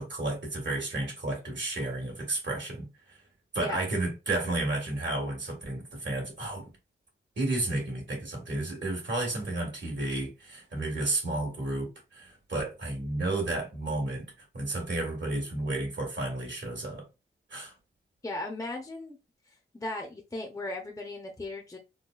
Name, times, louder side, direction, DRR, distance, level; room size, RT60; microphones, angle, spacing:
voice 1, 0.0-2.9 3.5-6.7 7.4-17.1 17.5-17.7, right 2 dB, 60° right, 1.7 m, -32 dB
voice 2, 18.2-19.2 19.7-21.8, left 2 dB, 15° left, 0.7 m, -36 dB
3.8 x 2.2 x 2.4 m
wide cardioid pair, 80°, 21 cm